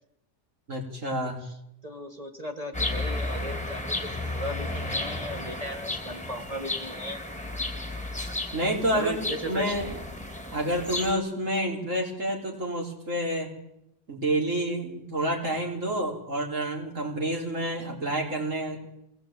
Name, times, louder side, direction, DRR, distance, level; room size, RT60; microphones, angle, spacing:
voice 1, 0.7-1.4 8.5-9.8 10.5-13.5 14.1-18.8, right 1 dB, 90° right, 0 dB, 4.9 m, -28 dB
voice 2, 1.8-7.2 8.9-9.8, equal, 30° right, 4 dB, 2.0 m, -37 dB
sound 1, 2.7-11.1, left 2 dB, 5° left, 2.5 m, -33 dB
22.0 x 18.5 x 9.0 m, 0.81 s
omnidirectional pair, 1.3 m